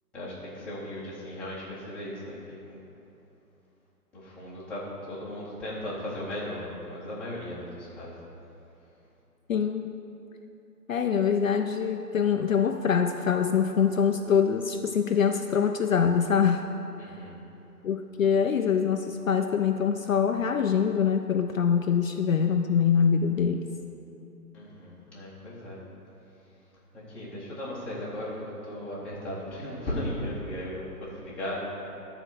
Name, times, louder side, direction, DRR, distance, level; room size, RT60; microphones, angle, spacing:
voice 1, 0.1-2.8 4.1-8.1 17.0-17.4 24.5-25.8 27.1-31.6, left 1 dB, 5° left, -11 dB, 1.2 m, -36 dB
voice 2, 9.5-9.9 10.9-16.6 17.8-23.7, left 7 dB, 55° left, 5 dB, 0.5 m, -24 dB
11.5 x 4.4 x 6.5 m, 2.9 s
hypercardioid pair, 155°, 48 cm